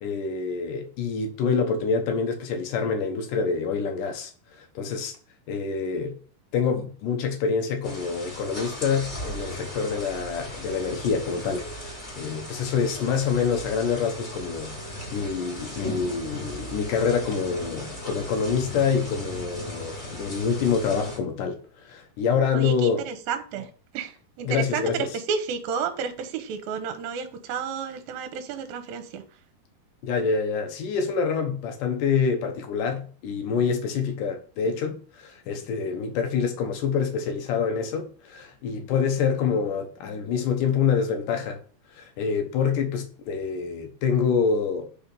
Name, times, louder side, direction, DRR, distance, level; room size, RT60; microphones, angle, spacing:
voice 1, 0.0-4.3 4.6-5.1 5.5-6.2 6.5-23.1 24.4-25.1 30.0-41.6 42.0-44.9, left 6 dB, 70° left, 2.2 m, -26 dB
sound 1, 7.8-21.2, left 1 dB, 15° left, 2.0 m, -37 dB
voice 2, 22.5-29.2, right 6 dB, 75° right, 2.4 m, -31 dB
5.7 x 4.4 x 5.2 m
omnidirectional pair, 4.6 m